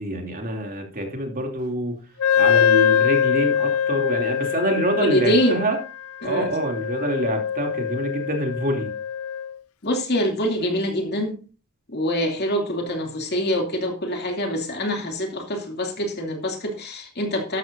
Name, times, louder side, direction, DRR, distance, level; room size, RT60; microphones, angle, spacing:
voice 1, 0.0-2.0 2.4-5.8 6.2-8.9, right 1 dB, 40° right, 2.8 m, -26 dB
Wind instrument woodwind instrument, 2.2-9.5, left 8 dB, 70° left, 0.5 m, -23 dB
voice 2, 5.0-5.6 6.2-6.5 9.8-11.4 11.9-17.6, equal, 50° left, 2.6 m, -24 dB
12.5 x 12.5 x 2.6 m
head